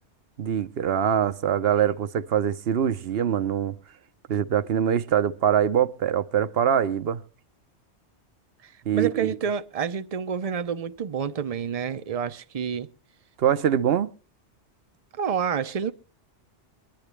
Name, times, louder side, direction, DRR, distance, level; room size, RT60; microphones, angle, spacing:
voice 1, 0.4-3.8 4.3-7.2 8.9-9.3 13.4-14.1, right 9 dB, 65° right, 1.0 m, -23 dB
voice 2, 8.6-12.9 15.1-15.9, right 7 dB, 40° right, 0.7 m, -28 dB
23.5 x 10.5 x 3.2 m
omnidirectional pair, 1.2 m